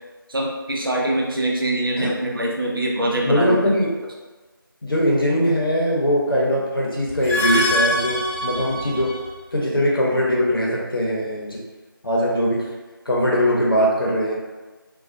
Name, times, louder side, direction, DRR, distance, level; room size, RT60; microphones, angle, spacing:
voice 1, 0.3-3.8, right 1 dB, 70° right, -2 dB, 0.6 m, -23 dB
voice 2, 3.2-3.9 4.8-9.1 9.5-11.6 12.0-12.7 13.1-14.4, equal, 70° left, -3 dB, 0.8 m, -21 dB
sound 1, 7.1-9.3, equal, 35° left, 0.9 m, -24 dB
2.3 x 2.3 x 2.5 m, 1.3 s
figure-of-eight pair, 175°, 12 cm